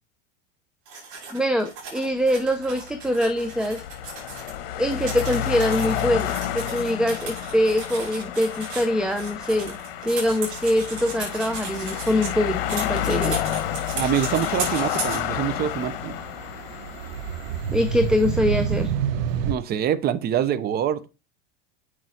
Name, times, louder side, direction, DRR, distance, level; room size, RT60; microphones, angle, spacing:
sound 1, 0.9-4.5 4.8-12.3 12.7-15.2, right 4 dB, 50° right, 5.7 m, -36 dB
voice 1, 1.3-3.8 4.8-9.8 10.0-13.4 17.7-18.9, left 1 dB, 5° right, 0.6 m, -23 dB
sound 2, 2.6-18.0, left 11 dB, 70° left, 1.4 m, -30 dB
sound 3, 3.4-3.5 5.5-6.9 7.3-7.8 8.1-19.5, right 7 dB, 70° right, 1.0 m, -32 dB
voice 2, 13.9-16.1 19.4-21.0, right 10 dB, 30° right, 0.8 m, -25 dB
7.6 x 6.5 x 4.2 m
supercardioid pair, 135°, 30 cm